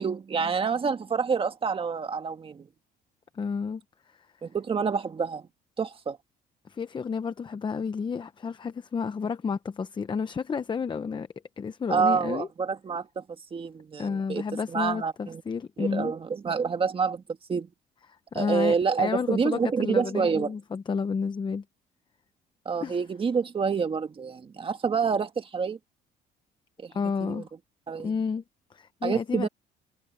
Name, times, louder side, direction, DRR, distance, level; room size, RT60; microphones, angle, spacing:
voice 1, 0.0-2.7 4.4-5.5 5.8-6.2 11.9-13.2 13.5-14.4 14.7-15.4 15.8-17.2 17.5-17.7 18.3-20.5 22.7-25.8 26.8-26.9 27.2-27.4 27.9-28.1 29.0-29.5, right 5 dB, 30° right, 1.8 m, -27 dB
voice 2, 3.3-3.8 4.1-4.2 6.7-11.3 11.6-12.5 14.0-16.1 18.3-21.6 22.8-23.0 26.9-27.5 28.0-28.4 28.7-29.5, left 5 dB, 30° left, 0.9 m, -31 dB
cardioid pair, 110°, 17 cm